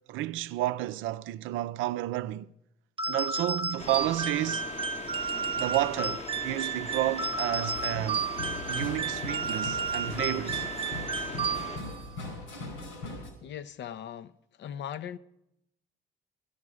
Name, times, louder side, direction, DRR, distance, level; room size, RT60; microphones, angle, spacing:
voice 1, 0.0-2.5 3.1-4.7 5.6-8.3 8.7-10.7, right 15 dB, 70° right, 0.5 m, -31 dB
sound 1, 3.0-12.0, right 5 dB, 25° right, 0.6 m, -32 dB
sound 2, 3.8-11.8, left 4 dB, 30° left, 0.8 m, -41 dB
sound 3, 7.7-13.3, left 2 dB, 80° left, 3.8 m, -40 dB
voice 2, 11.3-11.7 12.4-12.5 13.4-14.3 14.6-15.2, left 9 dB, 60° left, 0.6 m, -40 dB
12.5 x 11.5 x 4.8 m
hypercardioid pair, 50°, 21 cm